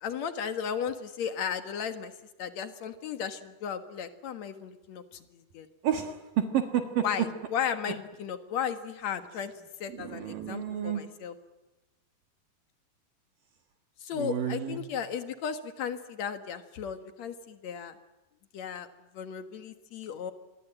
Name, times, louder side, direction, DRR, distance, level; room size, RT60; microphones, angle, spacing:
voice 1, 0.0-2.1 2.4-5.7 7.0-9.5 9.8-11.3 14.0-17.9 18.5-18.9 19.1-20.3, left 7 dB, 55° left, 9 dB, 2.2 m, -35 dB
voice 2, 5.8-7.1 9.9-11.1 14.1-14.8, right 9 dB, 60° right, 6 dB, 3.0 m, -30 dB
26.5 x 22.5 x 9.0 m, 1.1 s
omnidirectional pair, 4.8 m